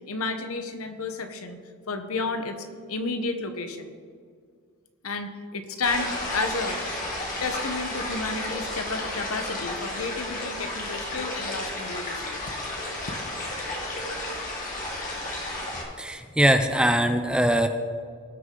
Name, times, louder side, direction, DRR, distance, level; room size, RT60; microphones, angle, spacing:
voice 1, 0.0-1.6 1.9-3.9 5.0-6.8 7.4-12.4, left 3 dB, 75° left, 7 dB, 1.0 m, -31 dB
sound 1, 5.8-15.8, left 1 dB, 40° left, 2.1 m, -32 dB
voice 2, 16.0-17.7, right 1 dB, 5° right, 7 dB, 0.5 m, -21 dB
19.0 x 6.5 x 3.8 m, 2.1 s
head